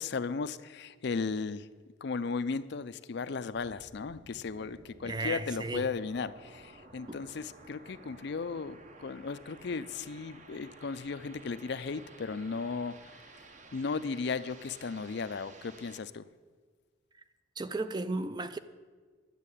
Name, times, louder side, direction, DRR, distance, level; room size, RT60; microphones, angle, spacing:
voice 1, 0.0-1.7 2.0-13.0 13.7-16.3, left 4 dB, 55° left, 0.5 m, -36 dB
sound 1, 3.5-16.0, right 3 dB, 35° right, 0.8 m, -54 dB
voice 2, 5.1-5.9 7.1-7.2 17.6-18.6, right 2 dB, 20° right, 0.4 m, -34 dB
11.0 x 7.4 x 8.4 m
head